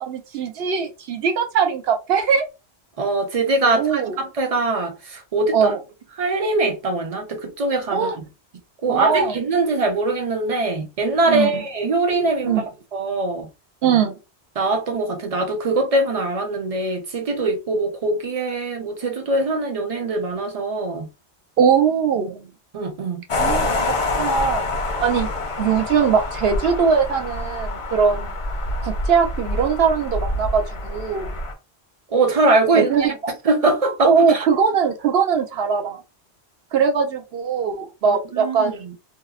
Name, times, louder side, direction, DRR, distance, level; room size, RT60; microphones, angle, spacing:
voice 1, 0.0-2.5 3.6-4.2 5.5-5.8 7.9-8.2 8.9-9.4 11.3-11.6 12.5-12.6 13.8-14.1 21.6-22.4 23.4-24.6 25.0-25.3 25.6-28.3 28.8-31.3 32.7-33.1 34.0-36.0 36.7-38.8, right 6 dB, 70° right, 0.8 m, -20 dB
voice 2, 3.0-5.7 6.2-8.3 8.8-12.6 12.9-13.5 14.6-21.1 22.7-23.2 32.1-34.4 38.0-38.9, right 2 dB, 45° right, 0.5 m, -22 dB
sound 1, 23.3-31.5, left 2 dB, 45° left, 0.4 m, -26 dB
2.7 x 2.0 x 2.3 m
omnidirectional pair, 1.1 m